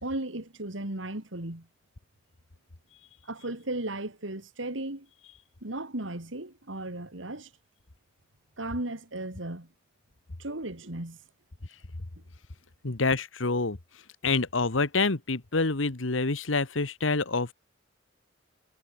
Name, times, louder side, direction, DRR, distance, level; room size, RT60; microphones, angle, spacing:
voice 1, 0.0-1.7 3.3-5.1 5.6-7.5 8.6-9.7 10.4-11.2 12.9-13.0, right 2 dB, 75° right, 3.0 m, -35 dB
voice 2, 12.8-13.8 14.2-17.5, left 3 dB, 85° left, 1.5 m, -27 dB
head